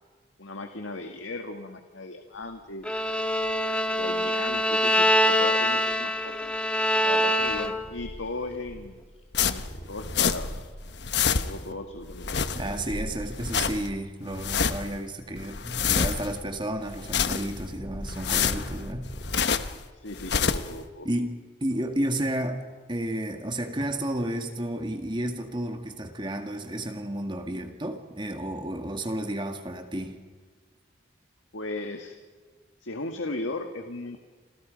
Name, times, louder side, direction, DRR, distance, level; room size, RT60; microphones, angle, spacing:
voice 1, 0.4-2.9 3.9-6.5 7.0-9.0 9.4-10.5 11.4-12.8 19.9-21.1 31.5-32.2 32.8-34.2, left 2 dB, 90° left, 5 dB, 1.9 m, -37 dB
Bowed string instrument, 2.8-8.0, equal, 5° left, 1.4 m, -24 dB
Purr, 7.4-13.9 14.6-19.8, equal, 30° left, 3.7 m, -41 dB
sound 1, 9.3-10.6 10.9-11.7 12.1-12.9 13.3-13.9 14.3-15.0 15.4-16.4 16.9-17.7 18.1-19.8 20.1-20.8, left 6 dB, 60° left, 1.1 m, -27 dB
voice 2, 12.6-19.1 21.0-22.6 22.9-30.2, right 1 dB, 25° right, 6 dB, 1.9 m, -32 dB
30.0 x 26.5 x 5.3 m, 1.5 s
head